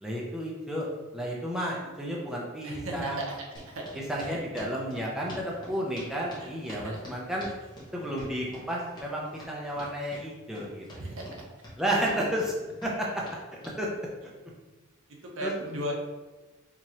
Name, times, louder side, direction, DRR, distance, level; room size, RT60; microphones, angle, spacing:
voice 1, 0.0-0.9 1.1-3.3 4.1-7.5 7.9-11.2 11.8-12.5 12.8-13.2 13.8-13.9 15.4-15.5, equal, 5° right, -4 dB, 0.5 m, -32 dB
voice 2, 2.6-4.4 6.4-7.0 7.9-8.3 11.0-11.4 15.1-15.9, right 1 dB, 70° right, 0 dB, 0.8 m, -37 dB
sound 1, 3.6-13.8, equal, 20° left, 1.0 m, -46 dB
4.7 x 2.8 x 2.9 m, 1.2 s
head